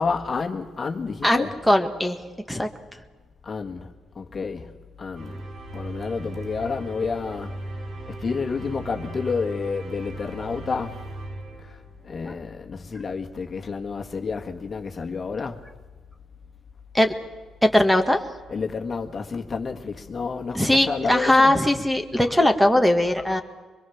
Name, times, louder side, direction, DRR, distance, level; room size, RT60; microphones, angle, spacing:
voice 1, 0.0-1.6 3.4-3.9 4.1-4.7 5.0-5.4 5.7-7.5 8.2-11.0 11.6-11.8 12.0-15.6 18.5-21.5, left 5 dB, 40° left, 1.8 m, -30 dB
voice 2, 1.2-2.2 2.5-2.7 12.3-12.4 16.9-17.1 17.6-18.2 20.5-23.4, left 1 dB, ahead, 1.8 m, -20 dB
sound 1, 5.1-12.2, right 2 dB, 70° right, 7.6 m, -37 dB
24.0 x 22.0 x 7.2 m
cardioid pair, 90°, 0 cm